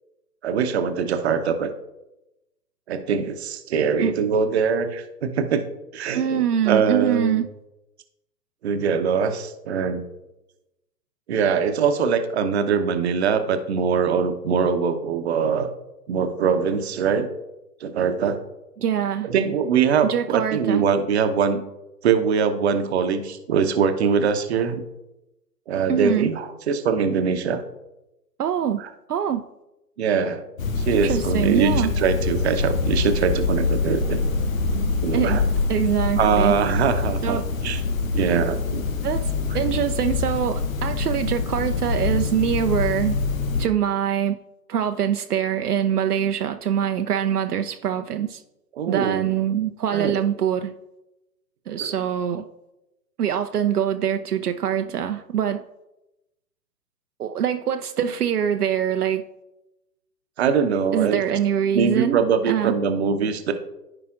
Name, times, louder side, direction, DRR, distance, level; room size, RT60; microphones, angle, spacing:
voice 1, 0.4-1.7 2.9-5.6 5.9-7.4 8.6-10.0 11.3-15.7 16.1-17.3 17.8-18.4 19.2-21.6 22.0-24.8 25.7-27.6 28.8-28.9 30.0-30.4 30.8-34.2 35.0-35.4 36.2-37.4 37.6-37.8 38.1-38.8 48.8-49.3 49.9-50.2 60.4-61.4 61.7-63.5, right 6 dB, 40° right, 8 dB, 0.8 m, -22 dB
voice 2, 6.1-7.5 18.8-19.3 20.0-20.8 25.9-26.3 28.4-28.8 29.1-29.4 30.9-31.9 35.1-35.4 35.7-36.5 37.2-37.5 39.0-43.2 43.6-44.4 44.7-48.4 48.9-50.7 51.7-52.5 53.2-55.6 57.2-59.2 60.9-62.2 62.5-62.7, right 9 dB, 65° right, 7 dB, 0.6 m, -24 dB
sound 1, 30.6-43.7, left 4 dB, 55° left, 1.0 m, -25 dB
14.5 x 4.9 x 2.5 m, 0.94 s
figure-of-eight pair, 125°, 49 cm